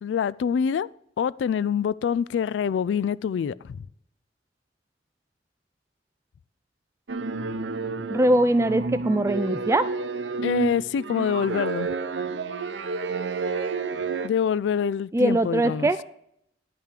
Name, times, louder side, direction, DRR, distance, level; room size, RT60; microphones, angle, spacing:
voice 1, 0.0-0.9 1.2-3.9 10.4-11.9 14.2-15.9, left 7 dB, 80° left, 0.3 m, -25 dB
sound 1, 7.1-14.3, right 4 dB, 90° right, 0.7 m, -30 dB
voice 2, 8.1-9.9 15.1-16.0, right 1 dB, 15° right, 0.3 m, -21 dB
10.5 x 5.7 x 6.6 m
head